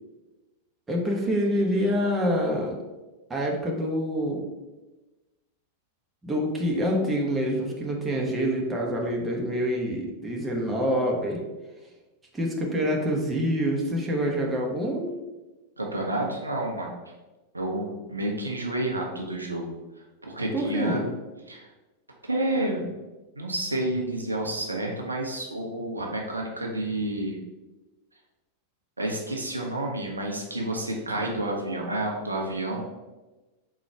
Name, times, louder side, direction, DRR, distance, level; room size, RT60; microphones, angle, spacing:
voice 1, 0.9-2.7 3.3-4.4 6.2-11.4 12.3-15.1 20.5-21.1, equal, 15° right, -1 dB, 0.8 m, -26 dB
voice 2, 15.8-16.9 17.5-19.8 20.2-21.1 21.5-21.7 22.2-22.8 23.4-27.4 29.0-32.9, right 1 dB, 80° right, 0 dB, 0.6 m, -30 dB
3.9 x 2.3 x 4.4 m, 1.1 s
figure-of-eight pair, 90°, 0 cm